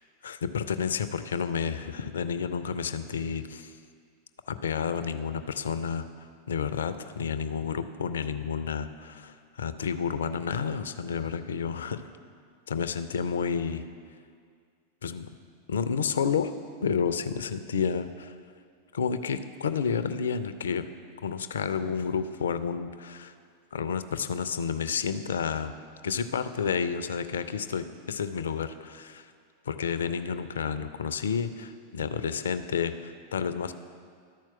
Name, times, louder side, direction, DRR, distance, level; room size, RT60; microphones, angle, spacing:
voice 1, 0.2-3.7 4.5-6.0 6.5-12.0 12.7-13.8 15.0-15.3 15.7-16.5 16.8-18.4 18.9-20.9 21.2-23.3 23.7-25.7 26.0-29.3 29.7-33.7, left 6 dB, 65° left, 11 dB, 0.4 m, -30 dB
12.0 x 4.5 x 5.7 m, 2.1 s
figure-of-eight pair, 90°, 0 cm